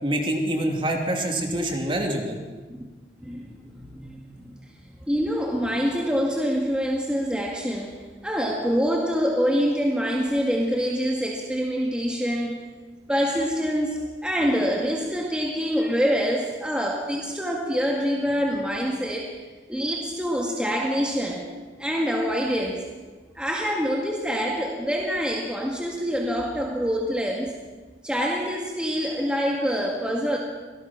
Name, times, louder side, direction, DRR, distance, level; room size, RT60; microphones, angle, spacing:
voice 1, 0.0-2.4, right 1 dB, 30° right, 2 dB, 2.6 m, -25 dB
voice 2, 3.2-4.6 5.0-12.6 13.1-19.4 19.7-21.5 21.8-22.9 23.4-27.6 28.0-30.4, equal, 5° right, -1 dB, 1.9 m, -26 dB
25.0 x 18.5 x 6.0 m, 1.3 s
head